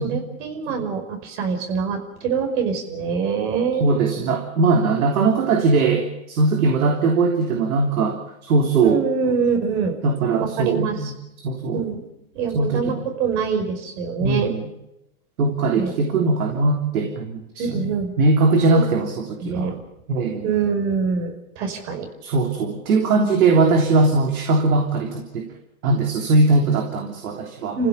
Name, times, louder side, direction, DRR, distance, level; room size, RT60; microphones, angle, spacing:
voice 1, 0.0-3.9 8.8-10.0 10.4-11.1 11.7-12.0 12.3-14.5 15.7-15.9 17.6-18.1 18.7-18.9 19.4-19.8 20.4-22.1 27.8-27.9, right 6 dB, 50° right, 5 dB, 5.2 m, -24 dB
voice 2, 3.8-9.0 10.0-11.1 11.4-11.9 12.5-12.9 14.2-14.6 15.4-17.9 18.2-19.7 20.1-20.4 22.2-25.5 25.8-27.8, right 3 dB, 70° right, 3 dB, 3.3 m, -20 dB
28.5 x 16.0 x 6.9 m, 0.89 s
hypercardioid pair, 130°, 44 cm